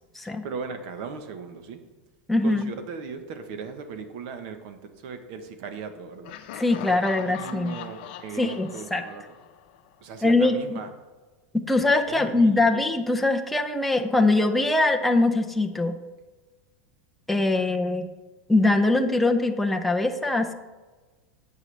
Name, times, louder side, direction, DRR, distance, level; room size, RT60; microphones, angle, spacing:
voice 1, 0.4-1.8 2.4-6.3 6.7-9.2 10.0-10.9 12.1-12.7, right 5 dB, 45° right, 8 dB, 1.0 m, -38 dB
voice 2, 2.3-2.7 6.5-7.8 8.4-9.0 10.2-10.8 11.5-16.0 17.3-18.1 18.5-20.5, left 2 dB, ahead, 3 dB, 0.5 m, -22 dB
Laughter, 6.2-10.1, left 10 dB, 55° left, 0.7 m, -41 dB
11.0 x 7.5 x 3.3 m, 1.3 s
supercardioid pair, 170°, 6 cm